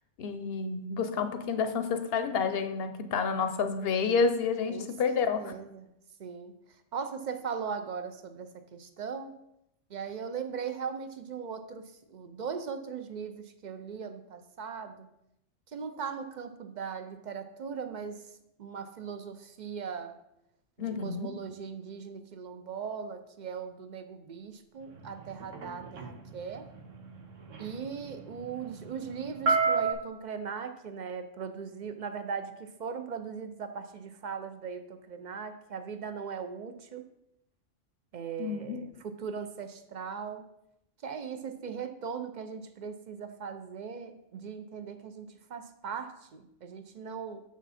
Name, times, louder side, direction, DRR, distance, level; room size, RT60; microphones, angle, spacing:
voice 1, 0.2-5.5 20.8-21.3 38.4-38.8, left 5 dB, 60° left, 10 dB, 0.8 m, -29 dB
voice 2, 4.7-5.9 6.2-6.5 6.9-9.4 9.9-11.8 12.1-15.1 15.7-18.2 18.6-20.2 20.9-26.7 27.6-37.0 38.1-40.4 41.0-47.4, right 6 dB, 50° right, 9 dB, 0.6 m, -39 dB
sound 1, 24.9-29.9, right 4 dB, 90° right, 1.3 m, -32 dB
6.9 x 6.2 x 4.1 m, 0.81 s
omnidirectional pair, 1.2 m